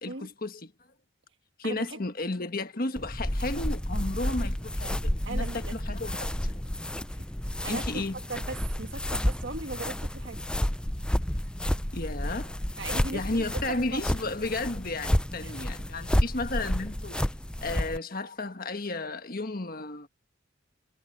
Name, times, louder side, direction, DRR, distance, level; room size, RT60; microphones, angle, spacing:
voice 1, 0.0-0.7 1.6-6.7 7.7-8.2 11.9-12.6 13.1-17.2 17.6-20.1, left 2 dB, 45° left, 1.5 m, -33 dB
voice 2, 1.6-2.0 5.3-5.9 7.2-7.3 7.6-8.0 8.3-10.4 12.8-14.0 15.4-15.5, right 3 dB, 60° right, 1.9 m, -38 dB
sound 1, 3.0-18.0, equal, 5° left, 0.4 m, -30 dB
head